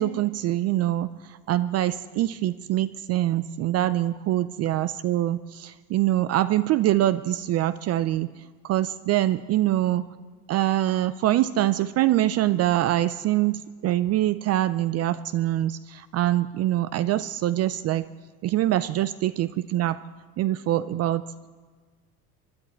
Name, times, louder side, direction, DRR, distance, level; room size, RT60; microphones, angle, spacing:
voice 1, 0.0-8.3 8.6-10.0 10.5-18.1 18.4-20.0 20.4-21.2, right 14 dB, 35° right, 14 dB, 0.4 m, -24 dB
23.5 x 10.5 x 4.4 m, 1.5 s
hypercardioid pair, 90°, 43 cm